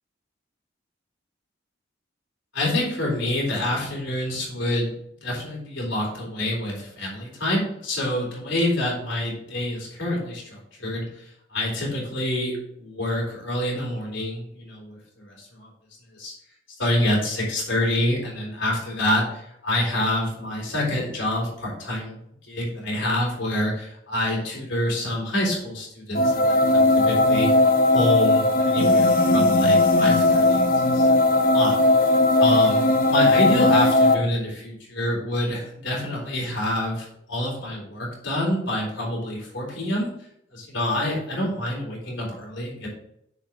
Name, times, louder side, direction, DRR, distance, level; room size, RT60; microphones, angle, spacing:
voice 1, 2.5-4.9 5.2-15.7 16.1-16.3 16.8-22.2 22.4-27.5 27.9-31.2 31.5-40.1 40.5-42.9, left 1 dB, 90° left, -3 dB, 3.7 m, -27 dB
sound 1, 26.1-34.1, left 2 dB, 45° left, 0.8 m, -18 dB
7.0 x 4.8 x 6.0 m, 0.74 s
head